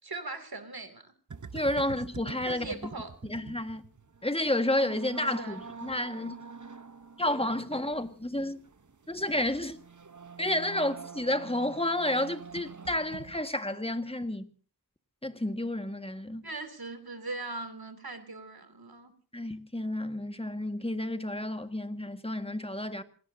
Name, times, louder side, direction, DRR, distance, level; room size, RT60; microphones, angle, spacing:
voice 1, 0.0-1.1 1.7-1.9 2.3-3.1 5.4-5.8 16.4-19.1, right 3 dB, 70° right, 2.8 m, -40 dB
sound 1, 1.3-13.4, right 5 dB, 50° right, 1.1 m, -46 dB
voice 2, 1.5-2.8 3.3-3.8 4.2-6.3 7.2-8.6 9.1-9.8 10.4-14.5 15.2-16.5 19.3-23.0, left 1 dB, 15° left, 1.7 m, -31 dB
27.0 x 18.5 x 2.8 m
wide cardioid pair, 50°, 38 cm